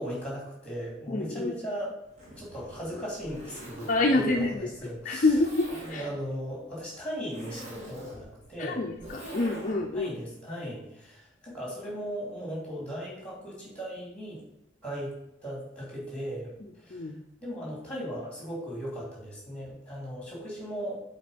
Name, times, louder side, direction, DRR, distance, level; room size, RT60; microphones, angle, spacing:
voice 1, 0.0-1.9 2.4-5.3 5.8-8.8 9.9-14.4 14.8-15.1 15.4-16.5 16.8-17.1 17.4-21.0, equal, 5° left, -3 dB, 3.2 m, -37 dB
voice 2, 1.1-1.5 3.9-4.7 5.0-6.1 8.6-10.1 16.9-17.1, left 2 dB, 40° left, 2 dB, 0.5 m, -27 dB
Zipper (clothing), 2.0-10.0, right 1 dB, 35° right, 2.8 m, -44 dB
8.2 x 4.3 x 5.2 m, 0.91 s
head